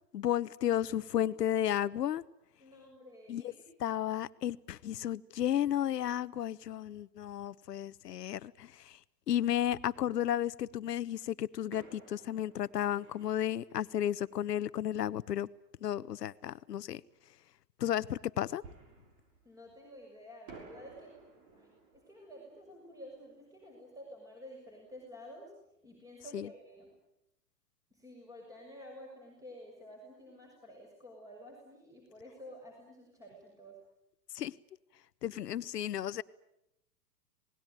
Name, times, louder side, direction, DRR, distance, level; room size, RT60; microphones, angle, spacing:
voice 1, 0.1-2.2 3.3-3.4 3.8-9.0 9.3-15.5 15.8-17.0 17.8-18.6 26.3-26.5 34.3-34.5 35.2-36.2, left 11 dB, 75° left, 17 dB, 1.0 m, -33 dB
voice 2, 2.6-3.6 19.4-21.1 21.5-25.5 25.8-26.9 27.9-33.8, equal, 5° right, 0 dB, 6.3 m, -51 dB
Fireworks, 9.7-10.8 11.7-15.2 18.6-20.1 20.5-25.0 25.3-25.4 25.9-26.1, right 4 dB, 40° right, 6.8 m, -57 dB
27.5 x 20.0 x 9.2 m, 0.85 s
hypercardioid pair, 120°, 48 cm